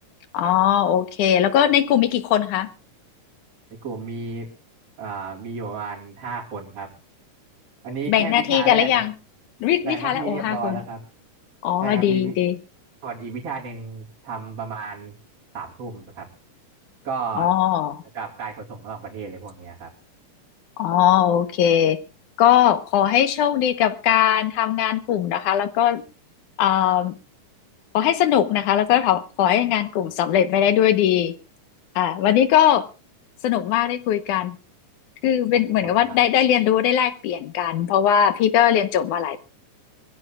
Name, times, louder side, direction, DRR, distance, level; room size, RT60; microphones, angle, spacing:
voice 1, 0.3-2.7 8.1-9.1 9.6-10.8 11.6-12.6 17.4-18.0 20.8-22.0 22.4-26.0 26.6-27.2 27.9-31.3 32.0-32.9 33.4-34.6 35.2-39.4, left 10 dB, 70° left, 11 dB, 2.5 m, -20 dB
voice 2, 3.8-4.5 5.0-6.9 7.8-9.0 9.8-11.0 11.8-12.3 13.0-15.1 15.5-16.3 17.0-17.5 18.1-19.9 35.8-36.2, right 5 dB, 45° right, -4 dB, 3.9 m, -32 dB
25.0 x 15.5 x 2.4 m, 0.32 s
omnidirectional pair, 3.8 m